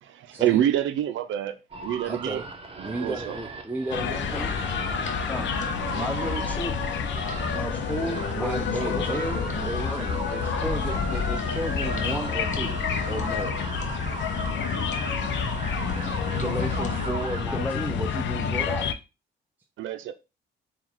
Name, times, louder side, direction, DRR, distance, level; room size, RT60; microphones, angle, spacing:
voice 1, 0.0-1.6 1.8-2.4 2.8-3.4 19.8-20.1, right 11 dB, 75° right, 0.5 m, -26 dB
sound 1, 1.7-17.5, right 4 dB, 30° right, 0.9 m, -38 dB
voice 2, 2.0-2.5 2.8-4.6 8.3-13.6 16.0-18.9, right 2 dB, 10° right, 0.4 m, -34 dB
sound 2, 3.9-18.9, left 7 dB, 65° left, 0.6 m, -29 dB
sound 3, 4.1-17.1, left 4 dB, 40° left, 0.8 m, -35 dB
voice 3, 5.9-6.9 7.5-10.1 17.5-18.0, equal, 5° left, 0.9 m, -34 dB
3.7 x 2.4 x 4.5 m
cardioid pair, 90°, 20 cm